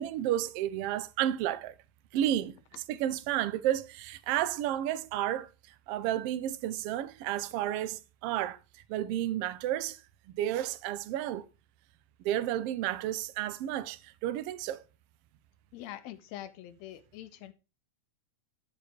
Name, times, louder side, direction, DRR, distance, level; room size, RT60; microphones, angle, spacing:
voice 1, 0.0-1.7 2.1-2.6 2.9-8.6 8.9-10.0 10.3-11.4 12.2-14.8, right 12 dB, 80° right, 1.4 m, -31 dB
voice 2, 15.7-17.5, left 13 dB, 75° left, 1.8 m, -44 dB
13.0 x 4.8 x 4.4 m
omnidirectional pair, 3.3 m